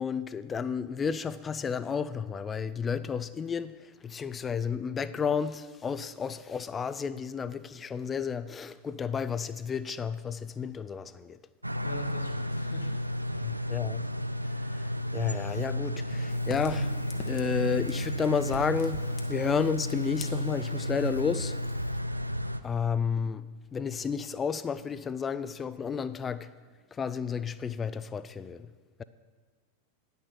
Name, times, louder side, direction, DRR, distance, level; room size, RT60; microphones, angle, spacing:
voice 1, 0.0-11.4 13.4-14.1 14.7-16.9 17.3-21.6 22.6-23.5 23.7-26.5 26.9-28.7, left 6 dB, 20° left, 0.4 m, -32 dB
sound 1, 11.6-22.6, left 1 dB, 85° right, 0.4 m, -32 dB
voice 2, 11.8-13.0 13.3-13.8, left 1 dB, 75° left, 1.4 m, -43 dB
Fire, 16.3-21.9, left 6 dB, 40° left, 1.1 m, -49 dB
10.0 x 6.6 x 6.7 m
figure-of-eight pair, 90°, 0 cm